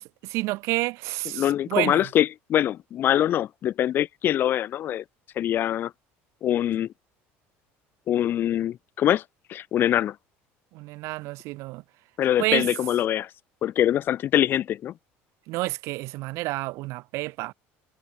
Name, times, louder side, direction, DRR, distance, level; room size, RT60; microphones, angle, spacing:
voice 1, 0.0-2.1 10.7-11.8 12.4-12.7 15.5-17.5, right 21 dB, 65° right, 1.9 m, -29 dB
voice 2, 1.3-5.0 5.4-5.9 6.4-6.9 8.1-9.2 9.5-10.2 12.2-13.3 13.6-14.9, left 11 dB, 40° left, 1.8 m, -24 dB
cardioid pair, 145°, 5 cm